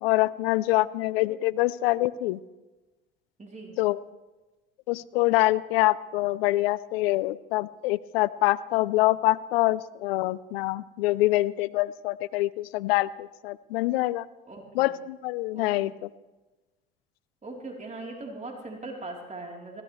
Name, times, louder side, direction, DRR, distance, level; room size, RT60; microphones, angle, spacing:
voice 1, 0.0-2.4 3.8-4.0 4.9-14.3 14.7-15.9, left 18 dB, 85° left, 18 dB, 0.6 m, -25 dB
voice 2, 3.4-3.8 14.4-14.9 15.5-15.9 17.4-19.8, right 2 dB, 25° right, 0 dB, 3.5 m, -40 dB
21.0 x 17.0 x 3.2 m, 1.1 s
hypercardioid pair, 65°, 29 cm